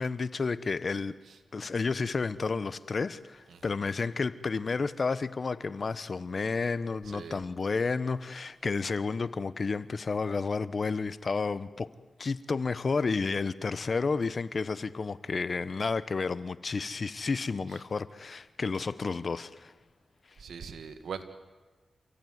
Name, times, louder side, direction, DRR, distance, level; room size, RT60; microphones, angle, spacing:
voice 1, 0.0-1.1 1.5-11.9 12.2-19.7, left 4 dB, 55° left, 1.1 m, -31 dB
voice 2, 7.0-7.4 17.7-17.8 20.4-21.2, right 6 dB, 85° right, 1.9 m, -41 dB
28.5 x 15.5 x 9.5 m
cardioid pair, 50°, 0 cm